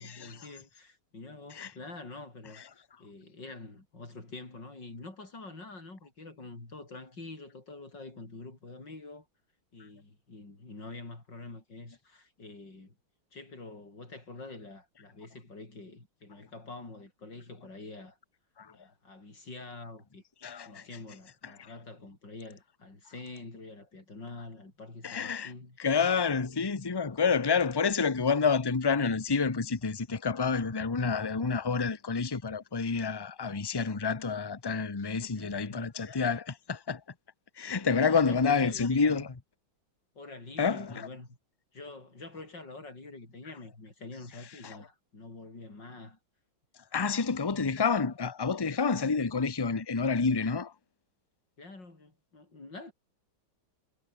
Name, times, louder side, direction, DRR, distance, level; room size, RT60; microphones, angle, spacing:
voice 1, 0.0-9.3 9.7-13.0 13.3-18.2 18.7-20.2 20.7-25.8 35.3-35.9 37.8-39.2 40.2-41.4 41.7-46.2 51.6-52.9, left 2 dB, 60° left, 7.0 m, -46 dB
voice 2, 20.4-20.8 21.6-21.7 25.0-25.5 25.8-37.0 37.6-39.3 40.6-41.1 44.6-44.8 46.9-50.7, left 5 dB, 20° left, 0.8 m, -28 dB
omnidirectional pair, 2.2 m